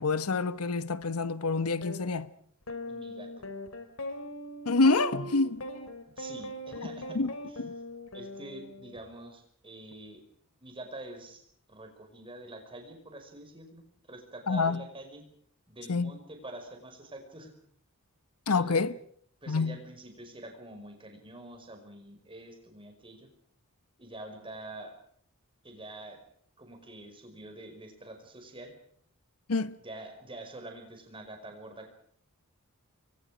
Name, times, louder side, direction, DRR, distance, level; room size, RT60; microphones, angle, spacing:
voice 1, 0.0-2.3 4.7-5.6 7.1-7.3 7.6-7.7 14.5-14.8 15.9-16.1 18.5-18.9 19.5-19.8 29.5-29.8, left 3 dB, 85° left, 1.0 m, -27 dB
sound 1, 1.8-2.0 2.7-9.0, equal, 65° left, 3.3 m, -40 dB
voice 2, 2.9-3.5 6.2-7.2 7.5-7.8 8.1-10.2 10.6-11.4 11.7-15.3 15.7-17.5 18.5-18.9 19.4-23.3 24.0-24.9 25.6-26.2 26.6-28.7 29.8-31.9, right 1 dB, 25° right, 5.5 m, -46 dB
28.5 x 24.0 x 5.1 m
head